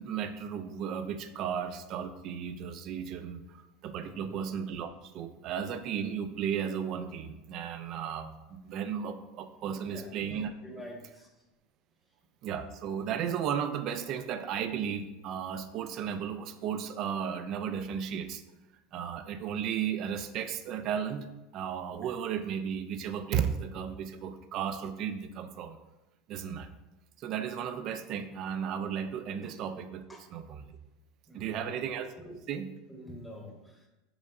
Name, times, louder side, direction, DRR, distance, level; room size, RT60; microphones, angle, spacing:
voice 1, 0.0-10.5 12.4-18.4 18.9-21.3 21.5-25.8 26.3-26.7 27.2-30.0 30.3-30.8 31.3-32.1 32.5-32.7, right 8 dB, 50° right, 10 dB, 0.4 m, -34 dB
voice 2, 4.0-4.4 9.6-10.1 10.6-11.4 22.0-22.1 23.2-23.3 29.4-29.5 30.1-30.3 31.3-31.8 32.1-32.4 32.9-33.9, left 1 dB, 5° left, 0 dB, 0.9 m, -47 dB
5.0 x 3.5 x 2.4 m, 1.0 s
supercardioid pair, 105°, 0 cm